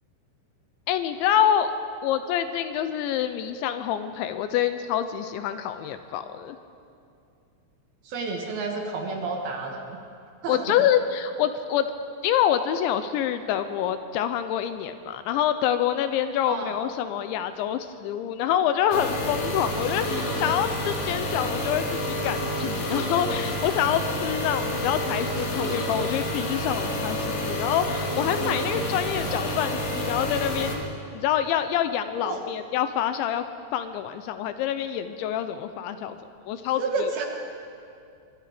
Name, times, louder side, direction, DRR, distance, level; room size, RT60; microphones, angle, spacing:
voice 1, 0.9-1.7 2.0-6.6 10.5-11.9 12.2-30.8 31.1-33.4 33.7-36.2 36.5-37.1, left 10 dB, 80° left, 10 dB, 2.9 m, -26 dB
voice 2, 8.0-10.0 10.4-10.8 16.5-16.8 29.2-29.3 32.2-32.4 36.8-37.2, right 3 dB, 65° right, 2 dB, 2.9 m, -30 dB
sound 1, 18.9-30.8, left 1 dB, 45° left, 3.1 m, -29 dB
23.5 x 22.5 x 5.1 m, 2.5 s
omnidirectional pair, 5.6 m